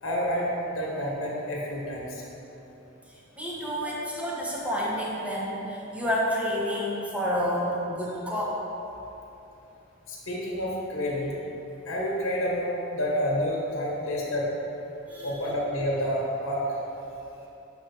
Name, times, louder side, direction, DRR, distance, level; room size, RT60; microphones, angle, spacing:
voice 1, 0.0-2.2 3.8-4.0 10.1-11.4 11.8-14.5 15.2-16.6, equal, 75° left, -3 dB, 1.3 m, -29 dB
voice 2, 3.1-8.6 15.1-15.3, equal, 5° right, -5 dB, 1.0 m, -29 dB
6.5 x 3.2 x 5.8 m, 2.9 s
head